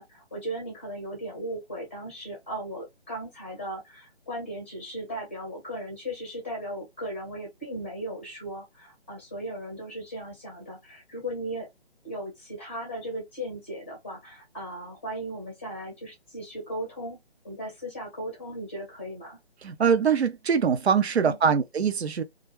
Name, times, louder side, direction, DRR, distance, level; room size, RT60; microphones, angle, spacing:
voice 1, 0.0-11.7 12.0-17.2 17.4-19.4 21.2-21.6, right 1 dB, 10° left, 0.6 m, -37 dB
voice 2, 19.6-22.2, right 6 dB, 80° right, 0.5 m, -23 dB
2.3 x 2.0 x 3.1 m
figure-of-eight pair, 150°, 32 cm